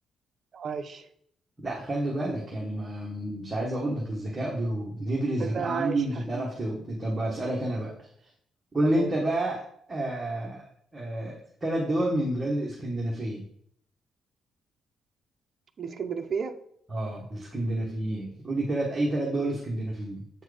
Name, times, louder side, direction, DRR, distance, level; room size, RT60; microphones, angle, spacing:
voice 1, 0.5-1.1 5.4-6.0 8.8-9.1 15.8-16.5, right 6 dB, 35° right, 5 dB, 0.6 m, -32 dB
voice 2, 1.6-7.9 8.7-9.6 9.9-10.6 10.9-11.4 11.6-13.4 16.9-20.2, right 1 dB, 15° right, -4 dB, 1.2 m, -29 dB
7.9 x 4.6 x 4.9 m, 0.67 s
cardioid pair, 180°, 0 cm